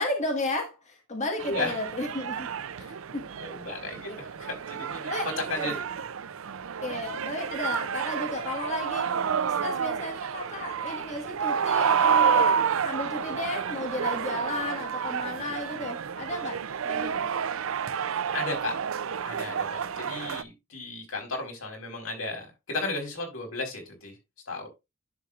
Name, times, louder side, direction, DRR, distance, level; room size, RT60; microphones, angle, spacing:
voice 1, 0.0-2.5 2.8-2.9 3.1-3.3 4.1-4.2 5.1-5.7 6.8-9.1 9.6-17.3, left 2 dB, 35° left, 1.7 m, -33 dB
sound 1, 1.4-20.4, right 7 dB, 75° right, 0.5 m, -29 dB
voice 2, 3.4-5.1 5.5-5.8 18.3-18.7 19.2-24.1 24.5-24.7, left 2 dB, 85° left, 4.4 m, -34 dB
10.5 x 7.0 x 2.5 m
head